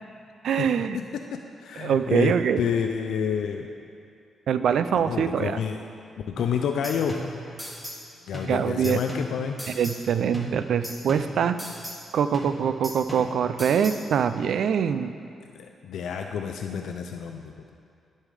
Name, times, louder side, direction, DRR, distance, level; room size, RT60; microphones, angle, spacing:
voice 1, 0.4-1.0 1.8-2.6 4.5-5.6 8.5-9.0 9.7-11.6 12.1-15.1, right 7 dB, 75° right, 11 dB, 0.3 m, -24 dB
voice 2, 1.6-3.7 4.9-5.8 6.3-7.2 8.3-9.6 15.5-17.5, left 7 dB, 80° left, 4 dB, 0.4 m, -29 dB
sound 1, 6.4-8.1 8.3-10.1 10.3-12.1 12.3-14.1, equal, 5° right, 1.7 m, -38 dB
9.7 x 5.5 x 4.9 m, 2.4 s
cardioid pair, 70°, 0 cm